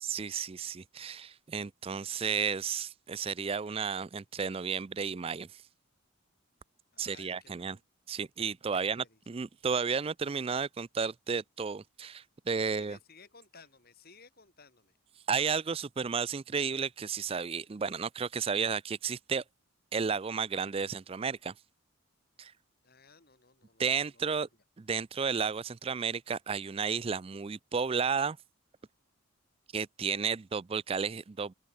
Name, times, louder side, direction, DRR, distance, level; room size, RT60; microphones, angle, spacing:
voice 1, 0.0-5.6 7.0-7.8 8.1-13.0 15.3-19.4 19.9-21.5 22.4-22.5 23.8-24.5 24.8-28.4 29.7-31.5, right 6 dB, 25° right, 0.3 m, -33 dB
voice 2, 6.9-7.8 8.8-9.2 12.7-14.9 22.8-24.5, left 4 dB, 45° left, 4.0 m, -58 dB
head